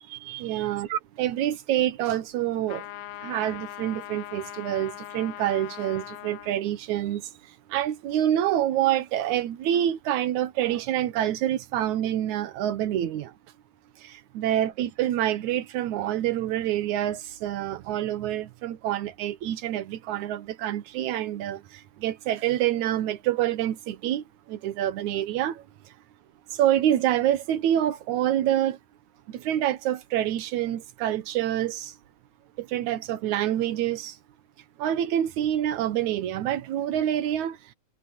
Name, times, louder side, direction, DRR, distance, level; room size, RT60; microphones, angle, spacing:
voice 1, 0.1-2.9 3.2-7.3 7.7-13.3 14.0-25.9 26.5-28.8 29.3-32.0 32.6-34.2 34.8-37.6, right 12 dB, 80° right, 2.5 m, -27 dB
sound 1, 2.7-6.5, left 14 dB, 80° left, 1.9 m, -40 dB
omnidirectional pair, 3.3 m